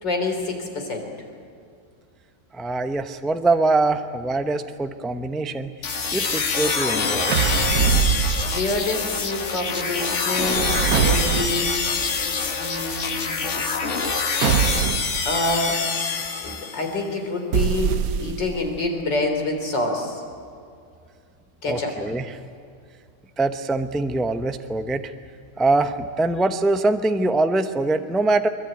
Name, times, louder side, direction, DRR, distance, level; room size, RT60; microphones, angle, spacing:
voice 1, 0.0-1.1 8.4-11.8 12.6-13.5 15.3-15.8 16.4-17.9 18.2-20.2 21.6-22.0, left 2 dB, 85° left, 3 dB, 4.3 m, -27 dB
voice 2, 2.5-5.7 6.1-7.3 21.7-22.2 23.4-25.1 25.6-28.5, right 2 dB, ahead, 8 dB, 0.4 m, -23 dB
sound 1, 5.8-17.0, left 5 dB, 45° left, 1.6 m, -25 dB
sound 2, 7.3-8.9 10.3-11.9 14.4-15.3 17.5-18.6, right 7 dB, 60° right, 1.2 m, -23 dB
23.0 x 22.0 x 9.1 m, 2.4 s
omnidirectional pair, 1.9 m